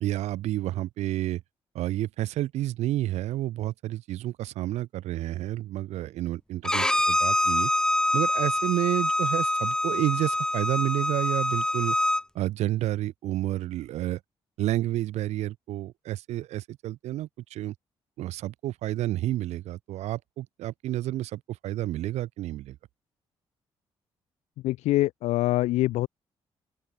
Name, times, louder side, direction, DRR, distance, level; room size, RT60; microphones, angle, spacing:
voice 1, 0.0-1.4 1.7-7.7 8.1-12.0 12.3-14.2 14.6-17.7 18.2-22.8, right 14 dB, 75° right, 0.9 m, -30 dB
Bowed string instrument, 6.6-12.2, left 1 dB, 5° left, 0.4 m, -25 dB
voice 2, 24.6-26.1, left 17 dB, 80° left, 0.8 m, -24 dB
open air
supercardioid pair, 55°, 11 cm